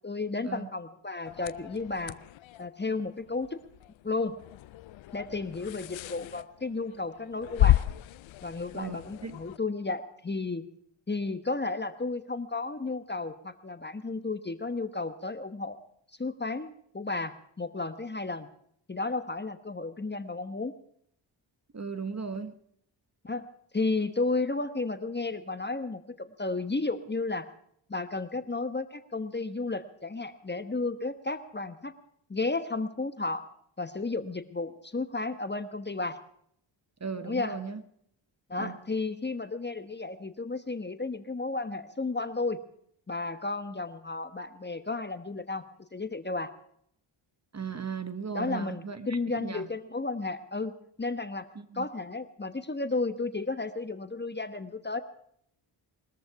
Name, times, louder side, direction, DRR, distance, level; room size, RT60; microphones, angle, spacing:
voice 1, 0.0-2.1 2.6-3.6 4.0-4.4 5.1-7.8 8.4-10.6 11.1-15.8 16.2-18.5 18.9-20.7 23.2-23.5 23.7-27.5 27.9-31.9 32.3-33.4 33.8-36.2 37.2-37.6 38.5-42.6 43.1-45.6 45.9-46.5 48.3-51.5 51.7-55.0, left 3 dB, 20° left, 10 dB, 1.1 m, -33 dB
sound 1, 1.3-9.6, left 14 dB, 70° left, 0.6 m, -32 dB
voice 2, 8.7-9.4 21.7-22.5 37.0-37.8 38.6-38.8 47.5-49.7 51.5-51.9, right 5 dB, 30° right, 11 dB, 1.3 m, -37 dB
21.5 x 13.5 x 4.7 m, 0.68 s
cardioid pair, 70°, 49 cm